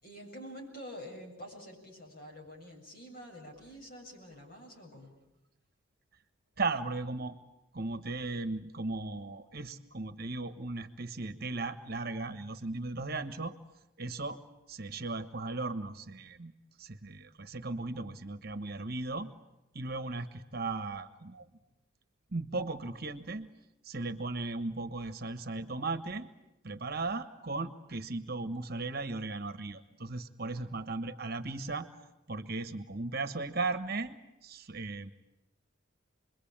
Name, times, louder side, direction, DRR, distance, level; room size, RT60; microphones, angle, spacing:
voice 1, 0.0-5.1, equal, 45° left, 0 dB, 7.3 m, -47 dB
voice 2, 6.6-7.3 7.7-13.5 14.0-14.4 14.7-16.5 16.8-19.3 19.7-21.5 22.3-23.5 23.8-26.3 26.6-31.9 32.3-35.1, right 3 dB, 45° right, 10 dB, 1.3 m, -36 dB
27.0 x 22.5 x 8.8 m, 0.92 s
head